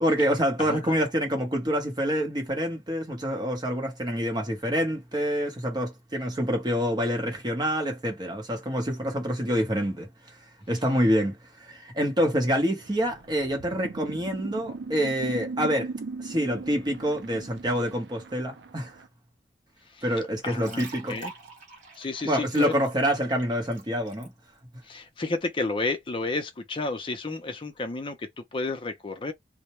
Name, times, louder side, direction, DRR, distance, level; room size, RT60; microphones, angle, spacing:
voice 1, 0.0-10.1 10.7-15.9 16.2-18.9 20.0-21.2 22.2-24.3, equal, 25° right, 0.8 m, -27 dB
voice 2, 0.6-1.0 19.9-20.0 20.4-20.8 21.1-21.3 21.9-22.8 24.8-29.3, left 3 dB, 30° left, 0.5 m, -31 dB
sound 1, 12.8-19.1, right 4 dB, 75° right, 0.4 m, -39 dB
sound 2, 20.4-24.3, right 4 dB, 45° right, 1.0 m, -45 dB
2.1 x 2.0 x 2.8 m
head